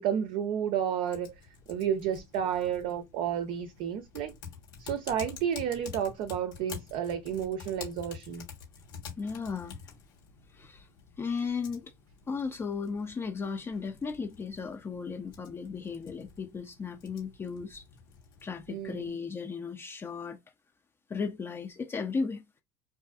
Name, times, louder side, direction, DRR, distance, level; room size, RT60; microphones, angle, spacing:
voice 1, 0.0-1.3 1.7-4.3 4.8-8.5 18.7-19.2, right 9 dB, 60° right, 0.5 m, -31 dB
Typing, 1.1-19.1, left 6 dB, 85° left, 1.2 m, -49 dB
voice 2, 9.2-9.9 10.5-10.9 11.2-11.9 12.3-17.8 18.4-20.4 21.1-22.4, left 5 dB, 25° left, 0.4 m, -35 dB
2.5 x 2.5 x 2.3 m
supercardioid pair, 95°, 10 cm